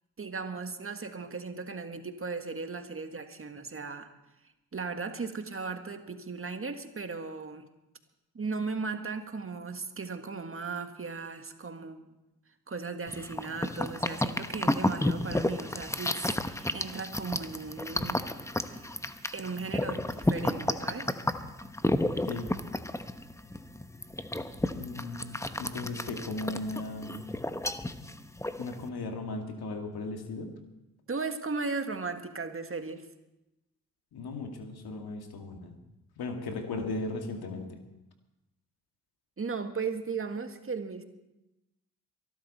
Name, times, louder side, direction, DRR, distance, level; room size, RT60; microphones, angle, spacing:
voice 1, 0.2-4.1 4.7-7.7 8.3-12.1 12.7-18.3 18.6-18.9 19.3-21.2 31.1-33.1 39.4-41.0, right 4 dB, 35° right, 7 dB, 1.8 m, -37 dB
sound 1, 13.1-28.9, left 1 dB, 5° left, 1.0 m, -32 dB
voice 2, 24.7-27.3 28.6-30.5 34.1-35.7 36.2-37.8, left 2 dB, 70° left, 4 dB, 2.4 m, -37 dB
23.0 x 12.0 x 4.3 m, 0.94 s
supercardioid pair, 50°, 39 cm